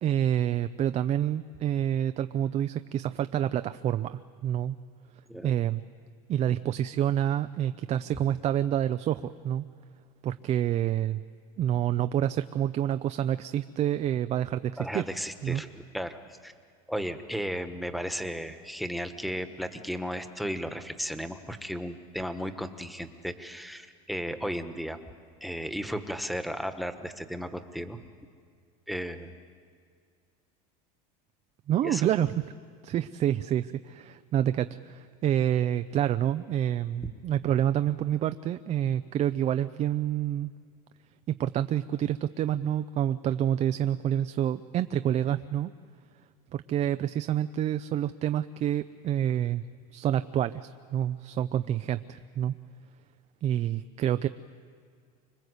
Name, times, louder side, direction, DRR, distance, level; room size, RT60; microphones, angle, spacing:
voice 1, 0.0-4.8 5.4-5.8 6.3-9.6 10.2-11.2 11.6-15.0 15.4-15.6 31.7-32.5 32.8-40.5 41.3-45.7 46.5-49.6 49.9-52.5 53.4-54.3, right 11 dB, 35° right, 11 dB, 0.6 m, -28 dB
voice 2, 14.8-16.5 16.9-25.0 25.4-28.0 28.9-29.3 31.8-32.1, equal, ahead, 9 dB, 1.5 m, -35 dB
25.5 x 21.5 x 8.2 m, 2.2 s
supercardioid pair, 125°, 19 cm